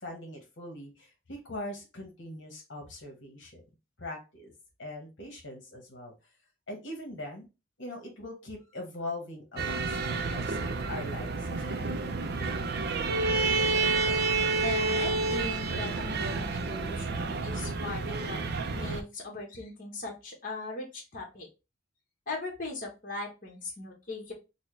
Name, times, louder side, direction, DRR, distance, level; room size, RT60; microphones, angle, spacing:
voice 1, 0.0-3.6 4.0-4.5 4.8-6.1 6.7-7.5 7.8-11.9, left 1 dB, 65° left, 1 dB, 1.1 m, -41 dB
sound 1, 9.6-19.0, right 3 dB, 55° right, 0.4 m, -29 dB
voice 2, 14.6-18.4 18.7-21.5 22.3-24.3, left 2 dB, 45° left, -1 dB, 1.1 m, -39 dB
4.2 x 2.1 x 3.1 m, 0.27 s
head